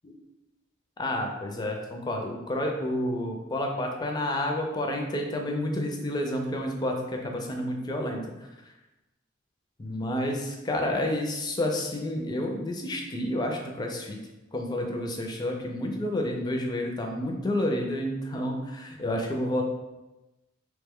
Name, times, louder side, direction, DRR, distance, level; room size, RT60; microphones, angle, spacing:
voice 1, 1.0-8.5 9.8-14.2 14.5-19.6, left 1 dB, 20° left, 2 dB, 0.4 m, -30 dB
3.0 x 2.1 x 3.5 m, 1.0 s
head